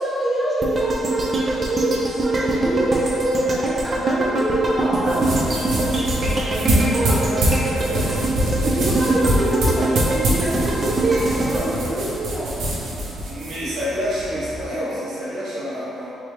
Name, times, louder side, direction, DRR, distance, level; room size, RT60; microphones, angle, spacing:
voice 1, 0.0-5.9 6.3-6.4 6.9-7.2 8.6-12.9, right 1 dB, 5° right, -10 dB, 1.4 m, -25 dB
sound 1, 0.6-12.8 13.2-13.3, right 2 dB, 30° right, 0.6 m, -24 dB
sound 2, 4.9-14.6, right 1 dB, 85° right, 0.9 m, -24 dB
voice 2, 5.9-8.1 9.0-9.1 13.2-16.1, equal, 60° right, -10 dB, 1.5 m, -29 dB
4.0 x 3.1 x 3.3 m, 2.7 s
cardioid pair, 90°, 0 cm